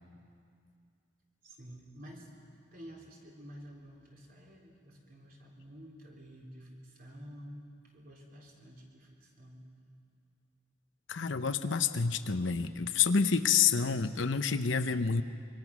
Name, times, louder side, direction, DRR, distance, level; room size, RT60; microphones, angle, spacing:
voice 1, 1.4-2.3 2.7-7.7 7.9-9.7, equal, 50° right, -1 dB, 4.0 m, -50 dB
voice 2, 11.1-15.2, left 6 dB, 70° left, 10 dB, 0.8 m, -28 dB
26.0 x 24.0 x 6.1 m, 2.4 s
head